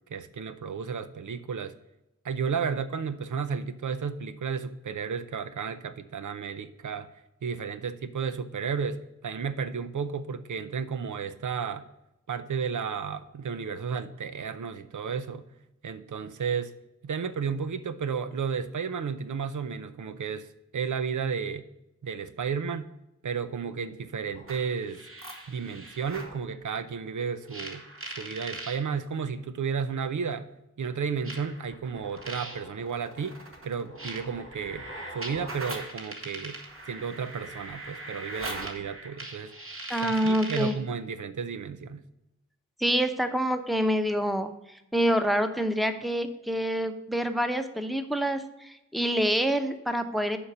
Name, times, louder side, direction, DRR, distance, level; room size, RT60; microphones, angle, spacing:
voice 1, 0.1-1.7 2.2-7.1 7.4-11.8 12.3-15.4 15.8-16.7 17.0-20.5 20.7-21.6 22.0-22.9 23.2-25.0 25.5-27.8 28.2-30.5 30.8-34.8 35.1-36.6 36.8-39.5 40.0-42.0, right 6 dB, 85° right, 11 dB, 0.6 m, -33 dB
sound 1, 24.3-26.4 27.5-28.8 29.9-30.0 31.2-40.8, right 1 dB, 45° right, 2.0 m, -41 dB
voice 2, 39.9-40.8 42.8-44.5 44.9-50.4, equal, ahead, 8 dB, 0.9 m, -26 dB
7.1 x 5.2 x 6.4 m, 0.90 s
wide cardioid pair, 45°, 29 cm